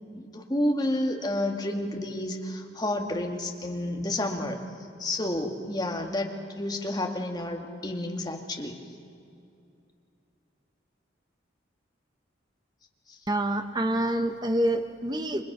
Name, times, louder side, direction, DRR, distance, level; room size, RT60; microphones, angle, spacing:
voice 1, 0.1-4.6 5.0-8.7 13.1-13.2, left 1 dB, 20° left, 2 dB, 2.0 m, -30 dB
voice 2, 13.3-15.4, right 1 dB, 20° right, 7 dB, 1.1 m, -27 dB
30.0 x 23.5 x 6.1 m, 2.6 s
head